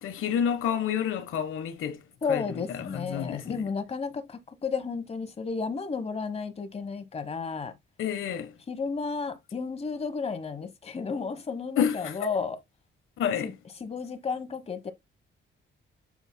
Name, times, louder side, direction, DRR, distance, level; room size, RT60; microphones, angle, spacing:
voice 1, 0.0-2.0 2.3-3.7 8.0-8.5 11.8-12.4 13.2-13.6, left 8 dB, 80° left, 1.2 m, -29 dB
voice 2, 2.2-7.7 8.7-12.6 13.4-13.5 13.8-14.9, left 5 dB, 30° left, 1.2 m, -32 dB
7.0 x 6.9 x 2.2 m
cardioid pair, 130°, 21 cm